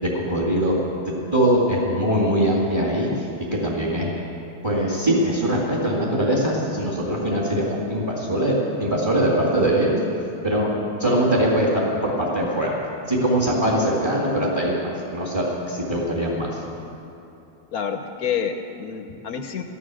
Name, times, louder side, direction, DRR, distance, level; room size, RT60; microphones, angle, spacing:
voice 1, 0.0-0.8 1.1-3.3 3.6-4.2 4.6-10.0 10.4-10.7 11.0-12.8 13.1-16.6, right 1 dB, 15° right, -5 dB, 2.1 m, -22 dB
voice 2, 17.7-19.6, left 7 dB, 65° left, 6 dB, 1.1 m, -28 dB
14.0 x 11.0 x 6.2 m, 2.8 s
omnidirectional pair, 1.8 m